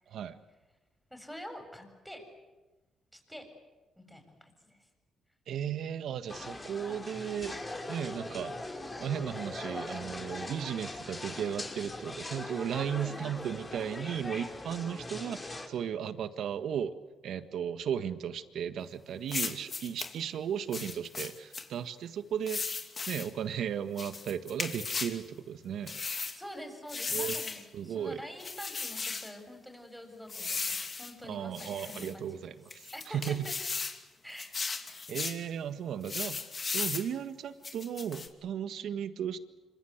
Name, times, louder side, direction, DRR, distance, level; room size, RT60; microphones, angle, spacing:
voice 1, 0.1-0.4 5.5-7.6 7.9-8.5 9.0-16.9 17.2-22.6 23.1-26.0 27.1-27.4 27.7-28.2 31.2-33.5 35.1-36.4 36.7-39.4, right 8 dB, 70° right, 10 dB, 1.6 m, -35 dB
voice 2, 1.1-2.3 3.1-3.5 4.0-4.8 13.0-13.3 26.4-32.6 32.9-33.5 34.2-34.5, equal, ahead, 5 dB, 7.3 m, -46 dB
sound 1, 6.3-15.7, left 2 dB, 20° left, 4.9 m, -41 dB
sound 2, 19.3-20.1 20.7-21.7 22.5-23.3 24.0-25.2 25.9-26.4 26.9-27.6 28.4-29.3 30.3-31.1 31.5-32.1 32.7-34.0 34.4-35.4 36.0-37.1 37.6-38.3, left 4 dB, 35° left, 2.8 m, -36 dB
26.5 x 25.5 x 8.2 m, 1.2 s
cardioid pair, 90°, 0 cm